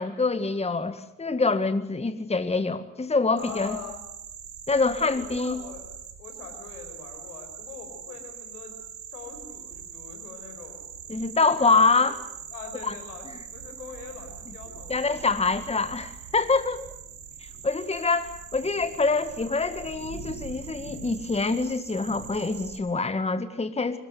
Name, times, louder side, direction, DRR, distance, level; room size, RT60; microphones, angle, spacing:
voice 1, 0.0-3.8 4.7-5.6 11.1-12.2 12.8-12.9 14.9-16.8 17.6-24.0, left 3 dB, 15° left, 11 dB, 1.8 m, -25 dB
voice 2, 3.4-4.0 4.9-8.7 9.1-11.0 11.4-12.1 12.5-15.3, left 5 dB, 75° left, 6 dB, 5.2 m, -43 dB
sound 1, 3.4-22.8, right 8 dB, 60° right, 4.4 m, -42 dB
25.5 x 20.0 x 9.5 m, 0.80 s
figure-of-eight pair, 55°, 45 cm